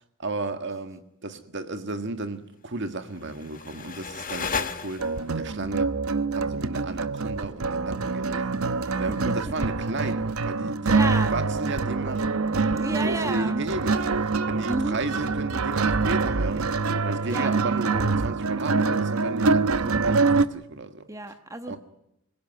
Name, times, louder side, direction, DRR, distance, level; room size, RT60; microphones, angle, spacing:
voice 1, 0.0-6.0 6.4-8.5 8.9-11.0 11.3-16.7 17.0-21.1 21.7-21.8, right 2 dB, 55° right, 1.8 m, -34 dB
sound 1, 3.0-5.4, left 5 dB, 40° left, 1.5 m, -34 dB
sound 2, 5.0-20.4, right 4 dB, 80° right, 0.9 m, -25 dB
voice 2, 8.8-9.3 10.9-11.3 12.8-13.6 14.6-15.0 17.3-17.5 21.1-21.8, right 2 dB, 15° right, 1.2 m, -32 dB
25.5 x 17.0 x 9.3 m
head